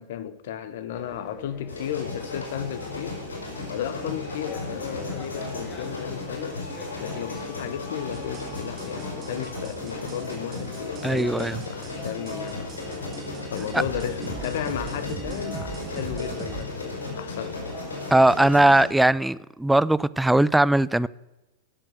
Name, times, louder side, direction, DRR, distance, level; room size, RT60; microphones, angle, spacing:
voice 1, 0.0-3.2 3.7-6.6 7.0-12.8 13.5-17.6, left 10 dB, 60° left, 1.1 m, -34 dB
sound 1, 0.9-18.5, left 1 dB, 25° left, 2.4 m, -44 dB
sound 2, 1.7-18.9, left 3 dB, 75° left, 5.3 m, -35 dB
sound 3, 8.1-16.6, right 7 dB, 25° right, 1.8 m, -41 dB
voice 2, 11.0-11.6 18.1-21.1, right 1 dB, 5° right, 0.4 m, -19 dB
16.0 x 7.6 x 6.4 m
figure-of-eight pair, 95°, 0 cm